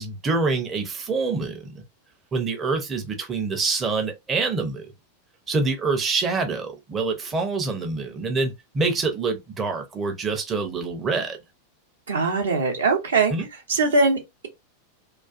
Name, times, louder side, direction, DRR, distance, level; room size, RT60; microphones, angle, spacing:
voice 1, 0.0-1.8 2.3-4.9 5.5-11.4 13.3-13.5, right 4 dB, 20° right, 0.5 m, -26 dB
voice 2, 12.1-13.3 13.7-14.5, right 3 dB, 65° right, 0.7 m, -21 dB
2.4 x 2.3 x 2.3 m
figure-of-eight pair, 90°, 0 cm